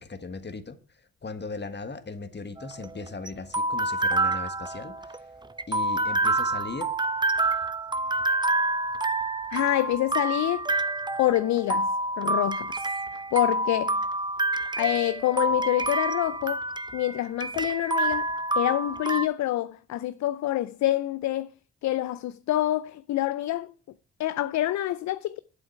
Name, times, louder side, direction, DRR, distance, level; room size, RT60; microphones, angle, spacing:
voice 1, 0.0-5.3 5.7-6.9, left 3 dB, 30° left, 1.5 m, -38 dB
sound 1, 2.6-19.3, right 2 dB, 15° right, 0.7 m, -28 dB
voice 2, 9.5-10.7 11.2-11.9 12.2-14.0 14.8-16.6 16.9-18.3 18.5-21.5 21.8-23.7 24.2-25.4, left 14 dB, 60° left, 0.5 m, -27 dB
8.4 x 8.0 x 4.6 m
hypercardioid pair, 40°, 33 cm